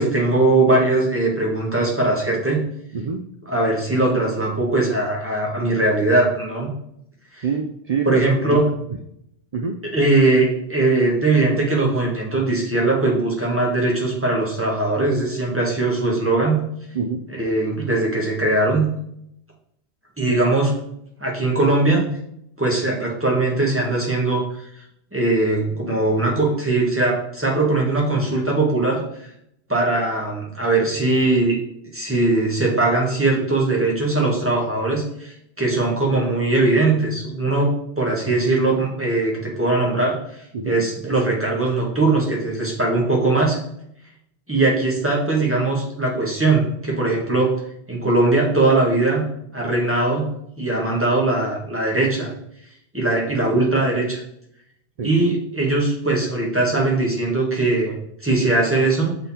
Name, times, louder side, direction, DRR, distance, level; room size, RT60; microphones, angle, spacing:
voice 1, 0.0-2.6 3.5-6.7 7.3-7.4 8.0-8.7 9.9-16.6 17.3-18.9 20.2-20.7 21.2-22.1 22.6-24.7 25.1-29.0 29.7-31.6 31.9-40.2 40.6-43.6 44.5-47.5 47.9-49.2 49.5-50.3 50.6-52.3 52.9-54.2 55.0-57.9 58.2-59.2, right 2 dB, 10° right, -2 dB, 1.6 m, -20 dB
voice 2, 2.9-3.3 7.4-8.6 9.5-9.8 16.9-17.2 20.3-20.4 40.5-40.8 55.0-55.1, right 5 dB, 50° right, 4 dB, 0.5 m, -25 dB
6.9 x 3.9 x 4.2 m, 0.74 s
omnidirectional pair, 1.1 m